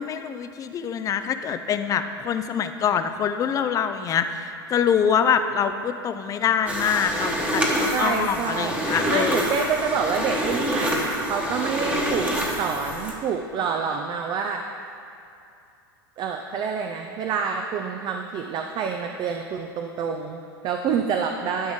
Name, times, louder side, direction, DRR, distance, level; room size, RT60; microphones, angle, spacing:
voice 1, 0.0-9.4, left 7 dB, 25° left, 9 dB, 0.4 m, -25 dB
sound 1, 6.7-13.1, equal, 10° right, 1.2 m, -26 dB
voice 2, 7.9-12.3 12.6-14.7 16.2-21.7, right 6 dB, 35° right, 4 dB, 0.5 m, -27 dB
12.0 x 5.0 x 3.6 m, 2.5 s
hypercardioid pair, 100°, 13 cm